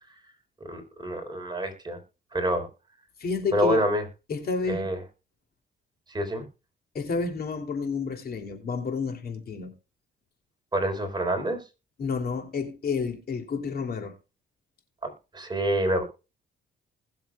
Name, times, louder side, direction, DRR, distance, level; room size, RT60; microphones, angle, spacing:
voice 1, 0.7-2.0 2.3-2.7 3.5-4.0 4.7-5.0 6.1-6.5 10.7-11.6 15.0-16.0, right 1 dB, 20° right, 4.0 m, -27 dB
voice 2, 3.2-3.8 4.3-4.9 6.9-9.7 12.0-14.1, left 5 dB, 50° left, 2.9 m, -30 dB
20.5 x 7.1 x 2.3 m
cardioid pair, 90°, 20 cm